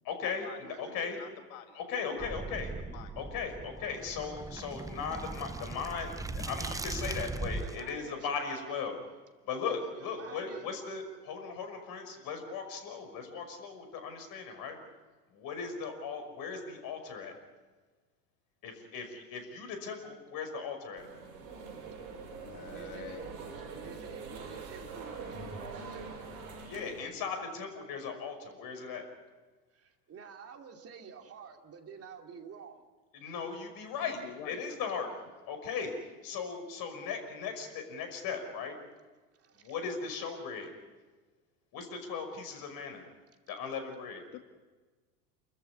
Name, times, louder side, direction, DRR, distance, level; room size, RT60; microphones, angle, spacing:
voice 1, 0.0-1.2 1.8-2.7 3.2-9.0 9.5-14.8 15.3-17.4 18.6-21.1 26.6-29.0 33.2-35.1 35.5-35.9 36.2-38.8 39.6-40.7 41.7-43.0 43.5-44.2, left 5 dB, 45° left, 7 dB, 5.8 m, -38 dB
voice 2, 0.6-1.2 7.6-8.9 9.6-11.0 22.7-26.1 29.7-32.8 39.3-39.7, right 6 dB, 30° right, 4 dB, 2.7 m, -49 dB
voice 3, 1.2-1.8 2.0-2.4 2.9-3.2 22.4-23.5 34.1-34.6 44.3-44.4, left 10 dB, 60° left, 7 dB, 1.7 m, -47 dB
sound 1, 2.2-7.9, right 3 dB, 5° right, 0.9 m, -39 dB
sound 2, 21.0-27.0, right 4 dB, 55° right, 7.3 m, -44 dB
29.0 x 14.0 x 9.8 m, 1.3 s
hypercardioid pair, 90°, 47 cm